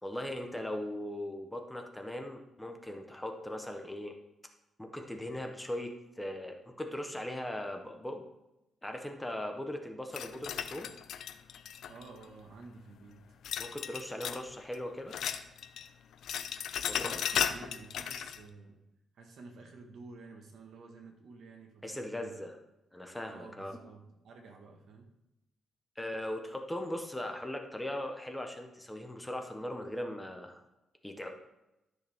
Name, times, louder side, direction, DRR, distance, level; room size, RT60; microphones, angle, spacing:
voice 1, 0.0-4.2 4.8-8.2 8.8-10.9 13.6-15.2 16.9-17.3 21.8-22.5 22.9-23.8 26.0-30.6 31.0-31.3, left 1 dB, 5° left, 3 dB, 0.9 m, -39 dB
sound 1, 10.1-12.2 13.4-14.5 14.7-15.9 16.1-18.4, left 8 dB, 75° left, 0.6 m, -35 dB
voice 2, 11.9-13.2 16.9-18.8 19.1-22.5 23.3-25.1, right 3 dB, 65° right, 3 dB, 1.7 m, -51 dB
13.0 x 6.5 x 3.6 m, 0.92 s
cardioid pair, 145°, 0 cm